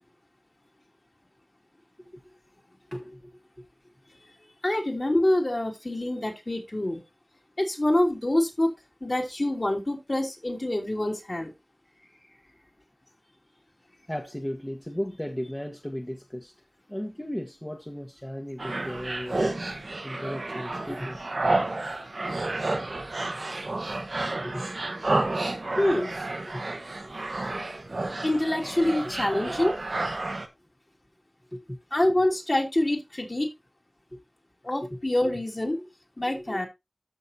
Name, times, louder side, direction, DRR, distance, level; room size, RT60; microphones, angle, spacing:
voice 1, 2.0-2.3 2.9-3.6 12.0-12.5 14.1-16.5 16.9-19.4 20.0-21.2 24.4-24.6 26.5-26.7 31.5-31.8 34.1-34.2 34.8-35.0 35.8-35.9 36.3-36.6, equal, 15° left, 1.3 m, -36 dB
voice 2, 4.6-7.0 7.6-8.7 9.0-11.5 25.8-26.1 28.2-29.8 31.9-33.5 34.6-35.8 36.2-36.7, left 1 dB, 45° left, 2.9 m, -26 dB
sound 1, 18.6-30.5, right 2 dB, 75° right, 1.3 m, -30 dB
13.5 x 5.4 x 2.8 m
wide cardioid pair, 55°, 0 cm